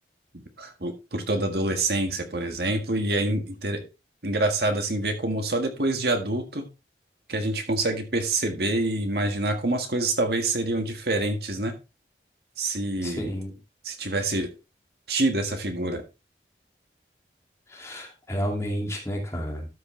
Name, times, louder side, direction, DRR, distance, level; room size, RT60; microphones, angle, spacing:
voice 1, 0.6-3.8 4.2-6.7 7.3-11.7 12.6-13.3 13.8-14.5 15.1-16.0, right 2 dB, 65° right, 5 dB, 1.7 m, -26 dB
voice 2, 13.0-13.5 17.7-19.7, equal, 15° left, 1 dB, 2.4 m, -31 dB
12.5 x 6.6 x 3.2 m, 0.27 s
head